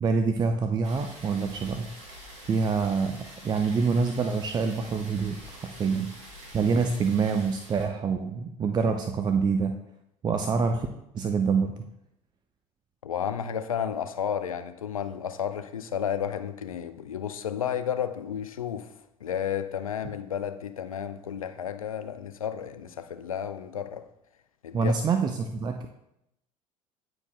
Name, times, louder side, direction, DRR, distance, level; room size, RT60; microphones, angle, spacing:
voice 1, 0.0-1.9 2.5-6.1 6.5-9.8 10.2-10.9 11.1-11.8 24.7-25.9, right 5 dB, 25° right, 6 dB, 0.5 m, -26 dB
sound 1, 0.8-7.9, equal, 65° right, 2.3 m, -46 dB
voice 2, 13.0-18.9 19.2-24.0 24.6-24.9, left 8 dB, 80° left, 10 dB, 0.4 m, -32 dB
9.5 x 4.7 x 2.3 m, 0.81 s
figure-of-eight pair, 65°, 17 cm